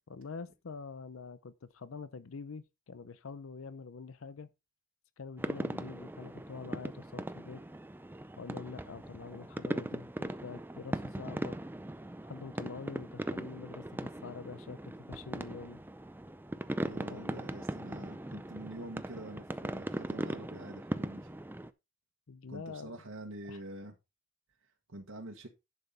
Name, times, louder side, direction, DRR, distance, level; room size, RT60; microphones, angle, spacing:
voice 1, 0.1-4.5 5.2-7.6 8.4-11.6 12.2-15.8 17.1-17.6 22.3-22.9 23.5-23.6, left 5 dB, 80° left, 0.6 m, -45 dB
sound 1, 5.4-21.7, right 1 dB, 10° right, 0.5 m, -39 dB
voice 2, 16.8-21.3 22.5-23.9 24.9-25.5, right 1 dB, 85° right, 1.5 m, -46 dB
10.5 x 5.7 x 4.0 m
head